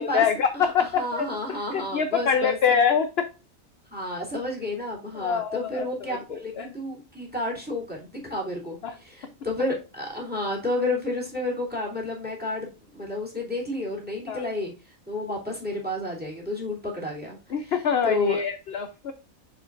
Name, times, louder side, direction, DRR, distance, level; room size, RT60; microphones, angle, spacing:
voice 1, 0.0-1.3 1.7-3.3 5.1-6.7 8.8-8.9 14.3-14.4 17.5-19.1, left 7 dB, 55° left, 8 dB, 0.8 m, -25 dB
voice 2, 0.5-2.8 3.9-14.7 15.1-17.7 18.0-18.4, left 1 dB, 5° right, -2 dB, 3.0 m, -31 dB
6.9 x 6.7 x 2.5 m, 0.29 s
omnidirectional pair, 1.4 m